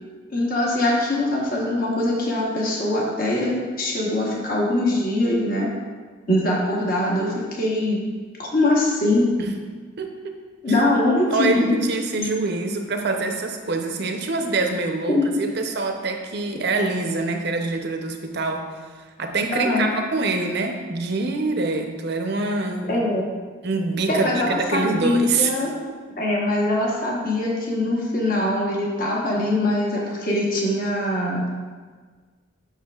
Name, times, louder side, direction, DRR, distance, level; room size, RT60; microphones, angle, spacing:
voice 1, 0.3-5.7 6.3-8.0 8.4-9.3 10.6-11.8 15.1-15.3 19.5-19.9 22.9-23.3 24.1-25.7 26.2-31.5, left 1 dB, 45° left, -3 dB, 1.1 m, -22 dB
voice 2, 10.0-10.4 10.7-10.8 11.3-18.7 19.2-23.1 23.6-25.5, right 3 dB, 55° right, 4 dB, 0.6 m, -25 dB
7.3 x 6.0 x 2.4 m, 1.5 s
head